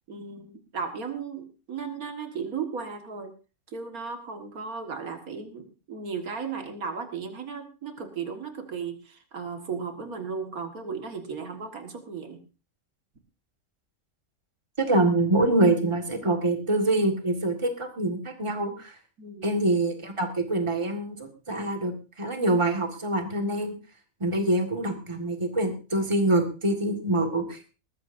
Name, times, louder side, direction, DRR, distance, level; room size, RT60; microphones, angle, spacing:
voice 1, 0.1-3.3 3.7-12.4 19.2-19.5, right 5 dB, 75° right, 5 dB, 2.2 m, -35 dB
voice 2, 14.8-18.9 19.4-21.9 22.2-23.7 24.2-27.6, right 2 dB, 20° right, 4 dB, 1.8 m, -25 dB
20.0 x 14.0 x 2.7 m, 0.32 s
omnidirectional pair, 1.5 m